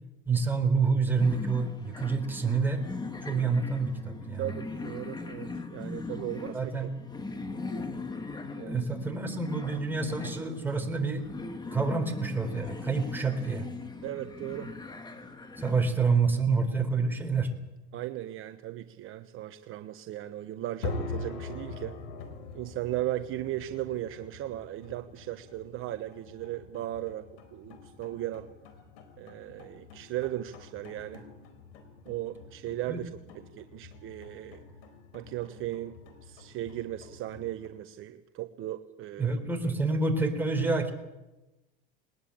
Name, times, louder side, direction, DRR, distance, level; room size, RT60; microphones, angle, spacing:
voice 1, 0.3-2.8 3.2-4.5 6.5-7.0 8.6-11.3 11.7-13.7 15.6-17.5 32.9-33.0 39.2-40.9, right 4 dB, 5° right, 3 dB, 4.0 m, -28 dB
sound 1, 1.2-15.9, left 3 dB, 15° left, 2.3 m, -40 dB
voice 2, 4.4-6.9 8.6-8.8 14.0-14.7 17.9-22.0 22.5-28.5 29.2-31.3 32.0-34.6 35.1-39.4, right 14 dB, 45° right, 8 dB, 1.1 m, -37 dB
sound 2, 20.8-37.7, left 4 dB, 75° left, 4.2 m, -44 dB
20.5 x 20.0 x 8.7 m, 1.0 s
supercardioid pair, 115°, 31 cm